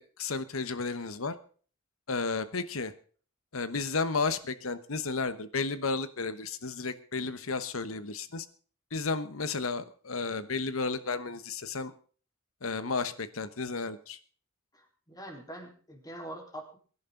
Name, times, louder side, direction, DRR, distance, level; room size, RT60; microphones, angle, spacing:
voice 1, 0.0-1.3 2.1-2.9 3.5-8.5 8.9-11.9 12.6-14.2, left 4 dB, 80° left, 13 dB, 1.2 m, -33 dB
voice 2, 14.7-16.8, right 1 dB, 20° left, 1 dB, 4.0 m, -44 dB
23.0 x 11.0 x 3.9 m, 0.42 s
head